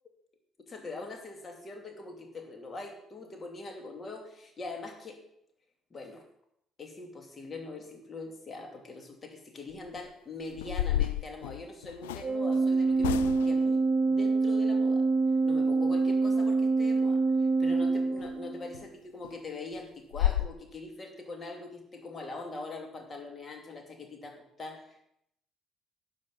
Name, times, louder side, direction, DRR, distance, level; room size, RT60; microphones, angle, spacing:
voice 1, 0.7-5.2 5.9-6.2 6.8-15.0 15.4-25.0, left 3 dB, 35° left, 4 dB, 2.8 m, -42 dB
sound 1, 9.7-10.0 10.5-12.3 13.0-13.7 18.2-18.3 18.7-18.9 19.2-19.3 19.7-19.8 20.1-20.5, left 13 dB, 85° left, 0.3 m, -31 dB
Organ, 12.2-18.7, right 3 dB, 30° right, 2.2 m, -26 dB
12.0 x 7.4 x 5.6 m, 0.75 s
hypercardioid pair, 50°, 0 cm